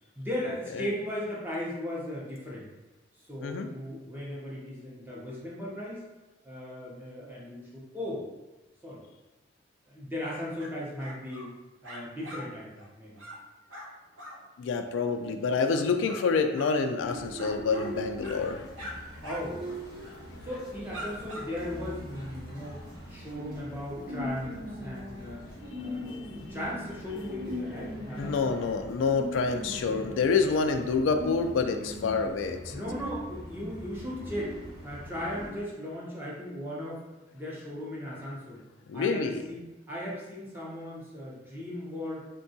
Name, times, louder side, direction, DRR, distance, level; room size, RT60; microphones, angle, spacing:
voice 1, 0.2-2.7 3.2-6.0 6.4-8.3 8.8-9.0 9.9-11.5 11.8-13.2 19.2-19.8 20.4-22.8 23.1-25.4 25.8-28.6 32.7-34.6 34.8-37.1 37.3-38.6 38.9-42.3, left 1 dB, 10° right, -6 dB, 0.6 m, -37 dB
sound 1, 10.6-10.7 11.0-11.5 11.8-12.4 12.8-12.9 13.1-13.4 13.7-13.9 14.2-14.4 15.7-16.2 16.5-16.8 17.4-17.9 18.2-18.4 18.7-18.9 19.2-19.4 19.7-19.9 20.5-20.6 20.9-21.5, equal, 90° right, 0.7 m, -42 dB
voice 2, 14.6-19.0 20.3-20.4 26.1-26.2 28.2-32.8 38.9-39.4, left 4 dB, 85° left, 6 dB, 0.3 m, -28 dB
sound 2, 17.0-35.5, left 1 dB, 70° right, 1.2 m, -41 dB
3.6 x 2.2 x 2.6 m, 1.1 s
head